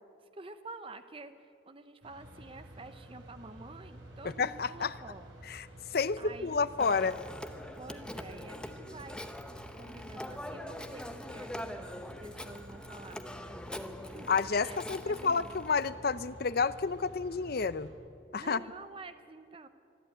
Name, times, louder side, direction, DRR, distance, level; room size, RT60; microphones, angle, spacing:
voice 1, 0.3-5.3 6.2-6.7 7.8-9.3 9.8-14.3 14.6-15.5 18.3-19.7, right 2 dB, 25° right, 10 dB, 0.8 m, -49 dB
sound 1, 2.0-17.9, right 1 dB, 75° right, 4.6 m, -51 dB
voice 2, 4.2-4.9 5.5-7.2 14.3-17.9 18.3-18.6, left 5 dB, 50° left, 15 dB, 0.5 m, -30 dB
Telephone, 6.8-15.9, left 1 dB, 5° left, 0.8 m, -43 dB
24.5 x 12.5 x 9.1 m, 2.5 s
head